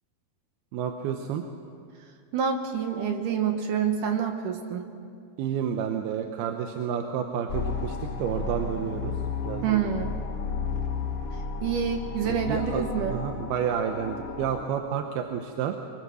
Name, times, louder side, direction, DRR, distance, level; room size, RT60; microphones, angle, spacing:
voice 1, 0.7-1.4 5.4-9.2 9.4-10.0 12.2-15.8, right 8 dB, 85° right, 5 dB, 2.8 m, -30 dB
voice 2, 2.3-4.8 9.6-10.1 11.6-13.2, right 7 dB, 65° right, 4 dB, 2.5 m, -27 dB
sound 1, 7.5-14.6, left 5 dB, 50° left, 1.8 m, -33 dB
24.0 x 22.0 x 6.3 m, 2.4 s
omnidirectional pair, 4.4 m